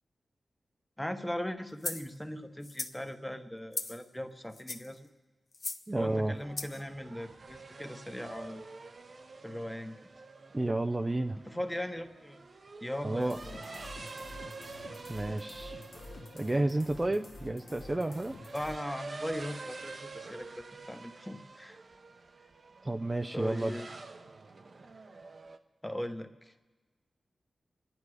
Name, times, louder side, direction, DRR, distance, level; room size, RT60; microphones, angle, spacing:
voice 1, 1.0-5.1 5.9-8.6 9.4-10.0 11.5-12.4 12.8-13.6 18.5-21.8 23.3-23.9 25.8-26.5, left 1 dB, 5° left, 7 dB, 0.9 m, -39 dB
sound 1, 1.8-2.1 2.6-3.0 3.7-4.0 4.5-4.9 5.5-5.8 6.6-6.8, left 3 dB, 45° left, 0.8 m, -38 dB
voice 2, 5.9-6.3 10.5-11.4 13.0-13.4 15.1-15.8 16.3-18.4 22.8-23.8, right 2 dB, 20° right, 7 dB, 0.4 m, -31 dB
sound 2, 6.1-25.6, right 3 dB, 50° right, 0.8 m, -48 dB
sound 3, 13.2-18.8, left 2 dB, 85° left, 1.7 m, -48 dB
27.5 x 10.5 x 4.8 m, 1.3 s
wide cardioid pair, 115°, 0 cm